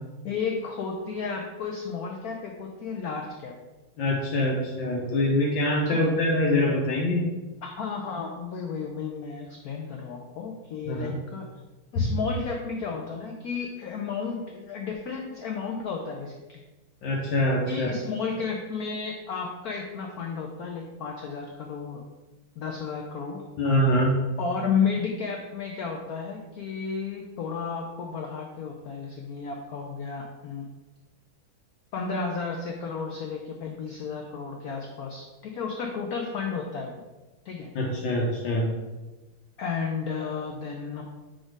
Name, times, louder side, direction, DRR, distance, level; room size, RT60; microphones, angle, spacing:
voice 1, 0.2-3.6 5.9-6.0 7.6-11.5 11.9-16.6 17.7-22.0 22.6-23.4 24.4-30.6 31.9-37.0 37.4-37.7 39.6-41.0, left 5 dB, 90° left, 2 dB, 0.8 m, -32 dB
voice 2, 4.0-7.3 10.8-11.2 11.9-12.1 17.0-18.0 23.6-24.2 37.7-38.7, left 1 dB, 70° left, -1 dB, 1.5 m, -24 dB
5.0 x 4.3 x 4.6 m, 1.1 s
omnidirectional pair, 2.3 m